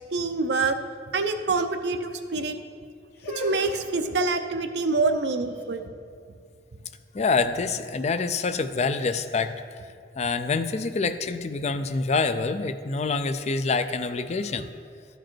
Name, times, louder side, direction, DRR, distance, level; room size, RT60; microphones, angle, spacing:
voice 1, 0.1-0.8 1.1-2.6 3.4-5.9, right 3 dB, 70° right, 8 dB, 0.6 m, -26 dB
sound 1, 3.1-9.0, left 2 dB, 65° left, 1.3 m, -41 dB
voice 2, 7.1-9.6 10.2-14.7, left 4 dB, 40° left, 10 dB, 0.4 m, -26 dB
12.5 x 5.1 x 4.5 m, 2.3 s
head